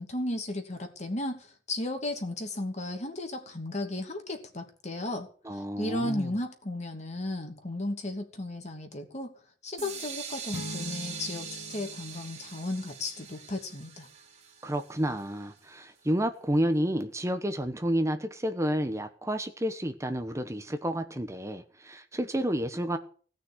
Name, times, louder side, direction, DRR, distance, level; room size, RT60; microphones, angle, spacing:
voice 1, 0.0-9.3 9.6-14.1, left 1 dB, 40° left, 2.7 m, -35 dB
voice 2, 5.4-6.3 14.6-23.0, equal, 15° right, 1.1 m, -30 dB
sound 1, 9.8-15.6, right 6 dB, 40° right, 3.0 m, -43 dB
sound 2, 10.5-13.3, left 2 dB, 65° left, 0.7 m, -43 dB
17.5 x 6.3 x 9.9 m
head